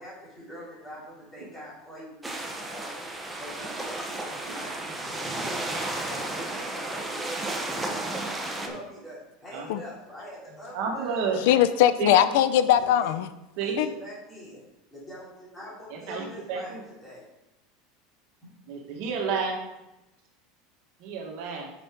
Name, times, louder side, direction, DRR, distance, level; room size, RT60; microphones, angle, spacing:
voice 1, 0.0-3.0 3.4-8.0 8.5-11.3 12.7-13.1 13.6-17.3 18.4-18.5, equal, 10° left, -8 dB, 3.1 m, -43 dB
sound 1, 2.2-8.7, right 2 dB, 5° right, 0.9 m, -33 dB
voice 2, 10.7-11.4 12.0-12.2 13.6-13.8 15.9-16.8 18.7-19.6 21.0-21.7, right 5 dB, 60° right, 0 dB, 1.7 m, -30 dB
voice 3, 11.5-13.3 13.8-13.9, left 11 dB, 70° left, 13 dB, 0.5 m, -20 dB
9.4 x 5.8 x 3.8 m, 0.95 s
supercardioid pair, 155°, 0 cm